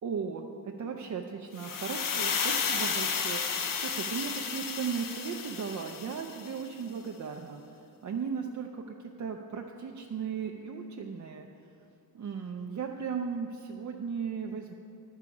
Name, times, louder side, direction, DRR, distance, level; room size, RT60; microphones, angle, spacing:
voice 1, 0.0-7.6 8.0-11.5 12.1-14.7, right 6 dB, 50° right, 2 dB, 0.6 m, -36 dB
sound 1, 1.6-6.6, left 6 dB, 60° left, 0.7 m, -32 dB
10.5 x 6.9 x 4.8 m, 2.6 s
wide cardioid pair, 110°, 37 cm